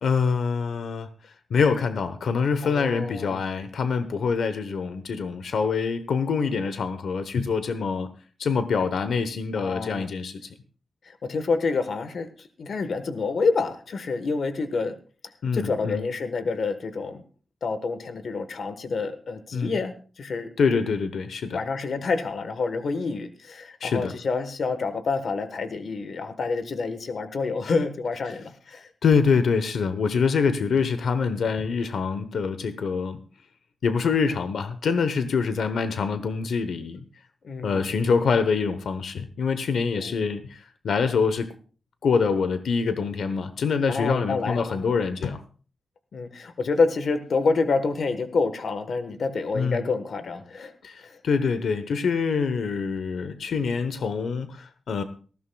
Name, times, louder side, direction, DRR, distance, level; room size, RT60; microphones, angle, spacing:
voice 1, 0.0-8.1 8.4-10.5 15.4-16.0 19.5-19.7 20.6-21.6 23.8-24.1 29.0-33.2 33.8-37.0 37.6-41.5 42.0-45.4 49.5-49.8 50.8-55.0, left 5 dB, 90° left, 10 dB, 0.9 m, -25 dB
voice 2, 2.6-3.4 9.6-10.1 11.1-15.0 15.5-17.2 17.6-20.5 21.5-28.9 37.4-37.9 40.0-40.3 43.9-45.0 46.1-50.7 51.0-51.2, left 4 dB, 60° left, 10 dB, 1.2 m, -28 dB
19.0 x 15.0 x 2.3 m, 0.39 s
wide cardioid pair, 180°, 0 cm